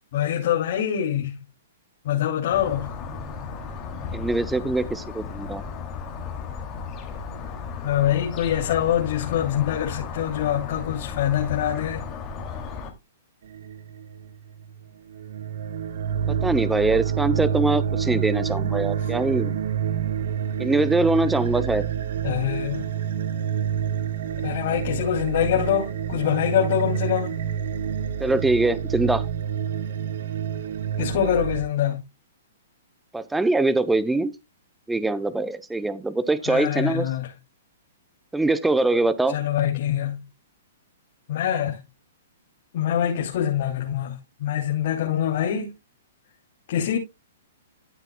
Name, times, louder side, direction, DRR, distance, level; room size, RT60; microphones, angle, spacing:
voice 1, 0.1-1.4 2.0-2.9 7.8-12.0 22.2-22.9 24.4-27.3 31.0-32.0 36.5-37.3 39.3-40.2 41.3-41.8 42.7-44.1 44.4-45.7 46.7-47.0, left 10 dB, 55° left, 3.1 m, -24 dB
sound 1, 2.5-12.9, left 5 dB, 30° left, 2.7 m, -35 dB
voice 2, 4.1-5.6 16.3-19.6 20.6-21.8 28.2-29.2 33.1-34.3 34.9-37.1 38.3-39.4, right 2 dB, 5° right, 0.8 m, -23 dB
sound 2, 13.5-14.8 15.1-31.6, right 8 dB, 65° right, 1.4 m, -28 dB
13.5 x 8.0 x 2.3 m
hypercardioid pair, 125°, 0 cm